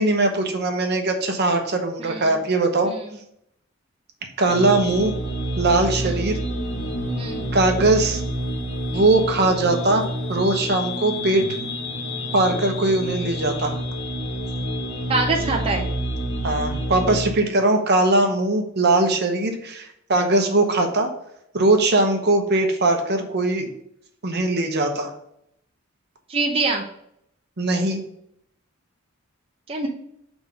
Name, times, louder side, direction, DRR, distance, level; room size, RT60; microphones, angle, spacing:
voice 1, 0.0-2.9 4.4-5.1 5.6-6.4 7.5-8.2 8.9-10.0 10.3-11.4 12.3-13.8 16.4-21.1 21.5-23.7 24.2-25.1 27.6-28.0, right 2 dB, 55° right, 4 dB, 0.9 m, -20 dB
voice 2, 2.0-2.4 2.8-3.0 6.0-6.2 7.2-7.5 15.1-15.8 26.3-26.8 29.7-29.9, right 3 dB, 30° right, 0 dB, 0.7 m, -24 dB
sound 1, 4.4-17.3, equal, 60° left, 1.7 m, -28 dB
5.4 x 3.6 x 5.3 m, 0.74 s
head